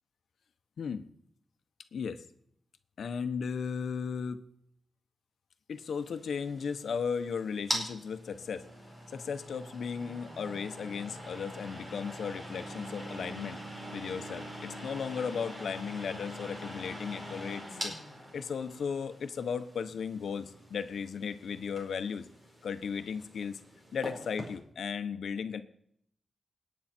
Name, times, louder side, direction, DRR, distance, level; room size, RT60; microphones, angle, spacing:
voice 1, 0.8-1.1 1.9-2.2 3.0-4.4 5.7-8.7 9.1-13.6 13.9-17.9 18.3-22.3 22.6-23.6 23.9-25.6, left 6 dB, 80° left, 9 dB, 1.1 m, -36 dB
sound 1, 5.9-24.6, equal, 20° right, 4.4 m, -43 dB
28.0 x 9.5 x 4.5 m, 0.71 s
wide cardioid pair, 170°, 0 cm